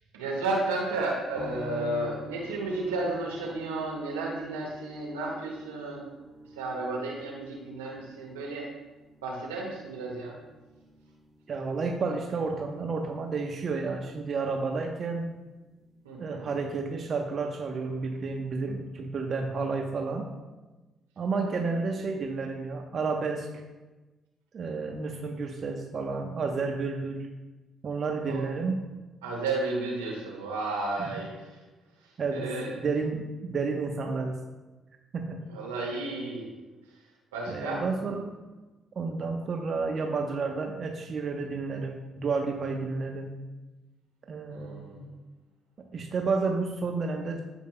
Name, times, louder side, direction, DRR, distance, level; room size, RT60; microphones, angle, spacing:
voice 1, 0.1-6.1 6.5-8.7 9.2-10.3 16.0-16.4 21.4-21.7 28.2-28.7 29.2-31.5 32.0-32.7 35.5-36.5 37.3-37.8 44.5-45.1, right 2 dB, 85° right, -3 dB, 1.6 m, -33 dB
sound 1, 1.4-16.6 16.9-17.7, left 1 dB, 25° right, 0.9 m, -49 dB
voice 2, 11.5-15.3 16.2-20.3 21.2-23.5 24.5-27.3 27.8-28.8 31.0-31.1 32.2-34.4 35.1-35.4 37.5-38.3 39.0-43.3 44.3-45.0 45.9-47.4, right 4 dB, 50° right, 2 dB, 0.9 m, -31 dB
15.0 x 5.2 x 2.2 m, 1.1 s
hypercardioid pair, 45°, 0 cm